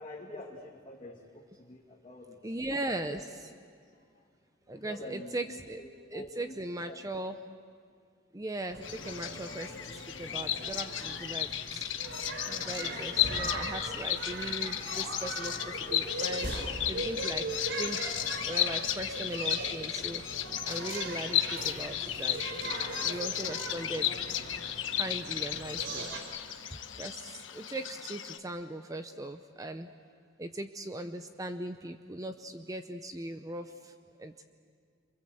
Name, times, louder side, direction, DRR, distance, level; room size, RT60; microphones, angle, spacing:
voice 1, 0.0-2.4 2.8-3.2 3.9-4.0 4.7-6.6 6.9-7.0, left 1 dB, 30° left, -3 dB, 2.3 m, -46 dB
voice 2, 2.4-3.5 4.7-5.8 6.1-7.4 8.3-11.9 12.5-17.5 17.8-20.2 20.6-22.4 23.0-24.3 24.9-26.1 27.0-29.9 30.4-33.9 34.2-34.4, right 1 dB, 20° right, 8 dB, 0.7 m, -39 dB
sound 1, 8.7-26.2, right 2 dB, 75° right, 4.4 m, -40 dB
Bird vocalization bird call bird song, 8.8-28.4, left 11 dB, 85° left, 1.2 m, -34 dB
28.5 x 26.5 x 7.9 m, 2.1 s
head